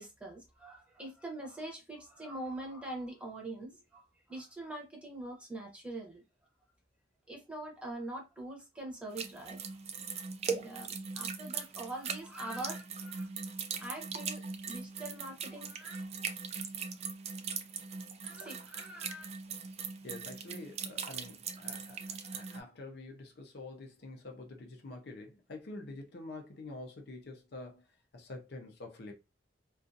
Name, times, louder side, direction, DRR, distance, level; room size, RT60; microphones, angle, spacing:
voice 1, 0.0-6.2 7.3-9.8 10.0-10.2 10.4-14.4 14.7-16.3 18.2-19.3, right 1 dB, 5° right, 0.8 m, -44 dB
sound 1, 9.2-22.6, right 5 dB, 35° right, 0.3 m, -40 dB
voice 2, 20.0-27.8 28.1-29.1, left 2 dB, 65° left, 0.6 m, -47 dB
2.5 x 2.3 x 2.6 m
head